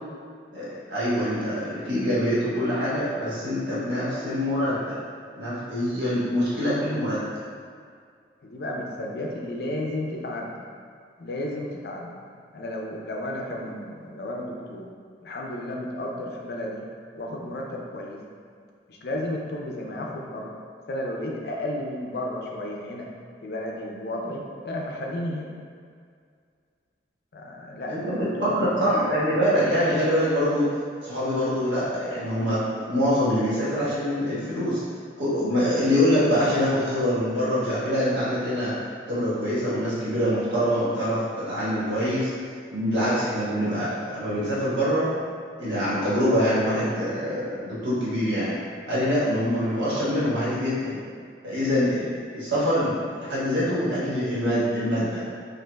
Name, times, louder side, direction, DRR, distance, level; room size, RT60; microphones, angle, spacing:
voice 1, 0.5-5.0 5.4-7.4 27.9-30.8 31.0-34.8 35.2-38.7 39.1-42.3 42.7-45.1 45.6-48.5 48.9-51.0 51.4-55.2, equal, 85° right, -9 dB, 1.4 m, -24 dB
voice 2, 8.4-10.6 11.2-12.2 12.5-14.9 15.2-16.9 17.1-18.2 18.9-20.5 20.9-23.1 23.4-25.5 27.3-28.9, left 1 dB, 60° left, -1 dB, 0.5 m, -33 dB
5.1 x 2.5 x 2.3 m, 2.2 s
head